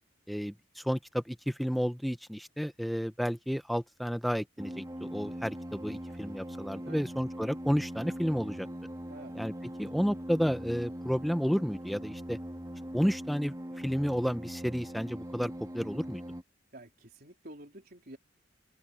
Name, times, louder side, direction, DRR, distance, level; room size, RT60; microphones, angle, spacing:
voice 1, 0.3-8.7 9.4-9.5 9.8-12.4 12.9-16.2, equal, ahead, 0.8 m, -31 dB
sound 1, 4.6-16.4, equal, 20° right, 3.0 m, -41 dB
voice 2, 16.7-18.2, right 1 dB, 55° right, 3.9 m, -49 dB
head